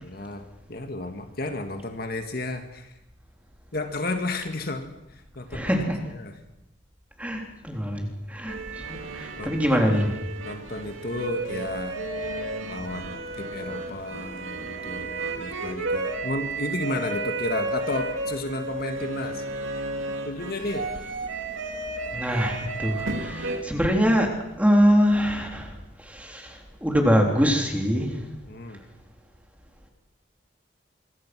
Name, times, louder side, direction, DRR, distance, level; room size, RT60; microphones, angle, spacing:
voice 1, 0.0-3.0 3.7-6.4 9.4-9.8 10.4-12.0 12.7-19.4 20.2-20.9 28.5-28.8, left 2 dB, 50° left, 6 dB, 1.9 m, -33 dB
voice 2, 5.5-6.0 7.2-10.1 22.1-28.2, equal, 5° right, 2 dB, 3.6 m, -24 dB
sound 1, 8.5-23.6, right 2 dB, 85° right, 2.7 m, -32 dB
26.5 x 23.0 x 6.2 m, 0.91 s
head